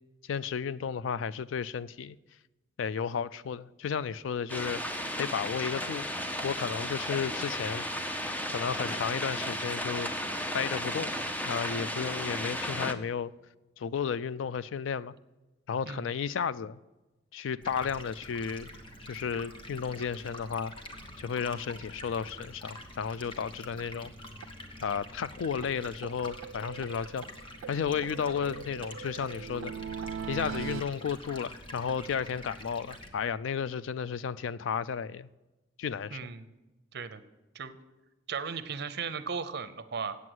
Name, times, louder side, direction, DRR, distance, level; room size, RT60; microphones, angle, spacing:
voice 1, 0.2-2.2 2.8-4.8 5.2-6.1 6.4-7.8 8.5-10.1 10.5-11.2 11.4-13.3 13.8-15.1 15.7-16.8 17.3-18.7 19.0-20.7 21.2-24.1 24.8-27.2 27.7-29.7 30.3-35.3 35.8-36.2, left 7 dB, 70° left, 0.3 m, -33 dB
sound 1, 4.5-12.9, equal, 10° left, 0.6 m, -34 dB
Stream, 17.6-33.1, left 1 dB, 25° left, 1.1 m, -46 dB
sound 2, 24.4-24.5 24.8-24.9 25.2-25.3 25.6-25.7 26.0-27.3 27.6-30.8, right 7 dB, 90° right, 0.3 m, -40 dB
voice 2, 36.1-36.5 36.9-37.2 37.5-37.8 38.3-40.2, right 5 dB, 55° right, 0.7 m, -36 dB
8.4 x 7.7 x 7.8 m
head